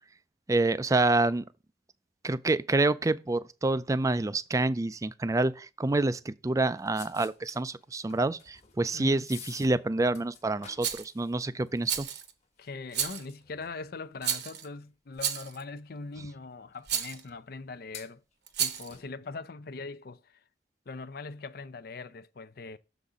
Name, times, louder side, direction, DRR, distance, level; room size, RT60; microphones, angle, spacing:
voice 1, 0.5-1.5 2.2-12.1, right 2 dB, 20° right, 0.4 m, -27 dB
sound 1, 6.6-14.8 15.1-15.2 16.1-16.3 17.3-17.5 17.9-19.1, left 7 dB, 40° left, 1.3 m, -52 dB
voice 2, 8.9-9.3 12.6-18.2 18.6-20.4 20.9-22.8, left 3 dB, 60° left, 0.5 m, -41 dB
Rattle, 10.8-11.1 11.9-12.3 12.9-13.3 14.2-14.7 15.2-15.6 16.9-17.2 18.5-18.9, right 8 dB, 65° right, 1.0 m, -31 dB
6.9 x 4.0 x 4.9 m
head